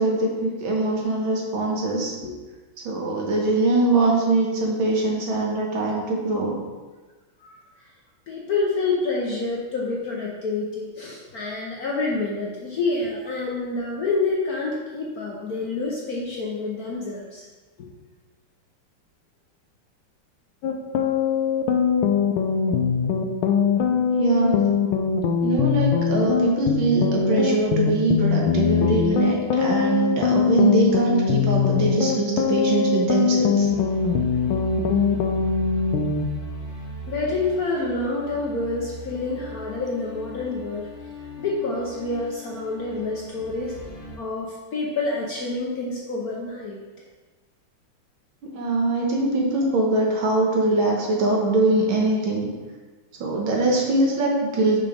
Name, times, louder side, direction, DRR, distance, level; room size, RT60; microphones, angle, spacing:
voice 1, 0.0-2.1 2.9-6.6 24.2-24.6 25.4-33.7 48.4-52.5 53.2-54.8, right 2 dB, 65° right, -1 dB, 1.9 m, -22 dB
voice 2, 8.3-17.5 17.8-17.9 37.1-40.9 41.4-43.7 44.2-46.8, left 3 dB, 55° left, -3 dB, 1.1 m, -27 dB
sound 1, 20.6-36.3, left 6 dB, 75° left, 1.4 m, -22 dB
sound 2, 33.6-44.2, right 4 dB, 35° left, 2.1 m, -38 dB
5.9 x 4.8 x 5.0 m, 1.3 s
omnidirectional pair, 2.4 m